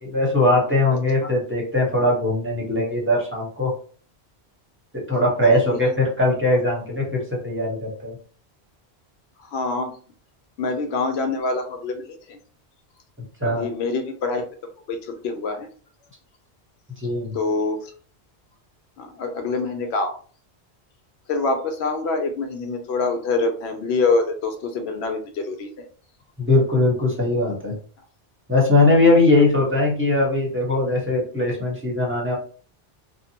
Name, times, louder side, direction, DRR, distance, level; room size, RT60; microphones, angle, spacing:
voice 1, 0.0-3.7 5.1-8.2 13.4-13.7 17.0-17.3 26.4-27.7 28.5-32.4, left 2 dB, 15° right, -2 dB, 0.8 m, -20 dB
voice 2, 5.5-5.9 9.5-9.9 10.6-12.4 13.4-14.4 14.9-15.7 17.3-17.8 19.0-20.1 21.3-25.8, left 3 dB, 80° left, 5 dB, 0.8 m, -25 dB
2.7 x 2.0 x 2.7 m, 0.42 s
omnidirectional pair, 1.1 m